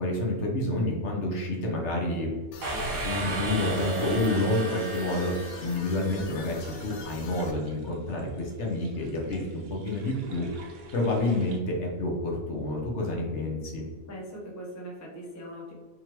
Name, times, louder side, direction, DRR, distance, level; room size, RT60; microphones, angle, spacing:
voice 1, 0.0-2.3 3.0-5.3 5.6-10.5 10.9-13.9, left 1 dB, 60° left, -1 dB, 1.1 m, -29 dB
sound 1, 2.5-7.5, left 3 dB, 85° left, 1.0 m, -43 dB
sound 2, 2.6-6.4, right 2 dB, 90° right, 1.3 m, -34 dB
sound 3, 5.0-11.6, right 3 dB, 65° right, 0.9 m, -49 dB
voice 2, 14.1-15.7, equal, 20° left, -2 dB, 0.4 m, -40 dB
3.7 x 3.1 x 2.9 m, 1.3 s
omnidirectional pair, 1.5 m